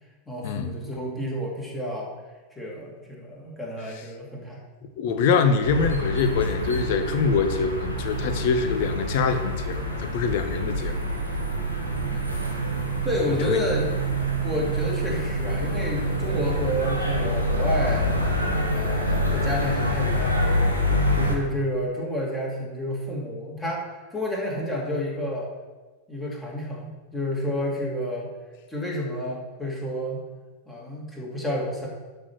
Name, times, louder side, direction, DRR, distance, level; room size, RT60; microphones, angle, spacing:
voice 1, 0.3-2.1 2.6-4.6 12.0-12.3 13.0-13.9 14.4-18.1 18.7-20.4 20.9-23.9 24.1-25.5 26.1-28.3 28.7-30.2 30.7-31.9, left 1 dB, 10° left, -3 dB, 2.7 m, -30 dB
voice 2, 5.0-10.9 13.5-13.6, left 5 dB, 50° left, 8 dB, 1.0 m, -24 dB
sound 1, 5.6-21.4, equal, 85° left, 1.9 m, -26 dB
11.5 x 4.6 x 6.5 m, 1.3 s
figure-of-eight pair, 90°, 0 cm